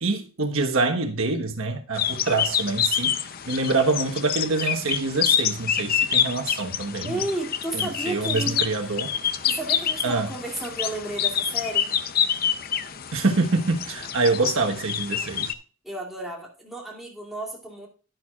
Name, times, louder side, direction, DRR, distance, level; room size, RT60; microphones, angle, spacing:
voice 1, 0.0-7.2 7.7-9.1 10.0-10.3 13.1-15.5, right 3 dB, 75° right, 1.3 m, -25 dB
sound 1, 2.0-15.5, left 9 dB, 45° left, 0.6 m, -27 dB
voice 2, 7.0-8.9 9.4-11.9 15.8-17.9, right 1 dB, ahead, 2.6 m, -32 dB
11.0 x 10.5 x 2.4 m
head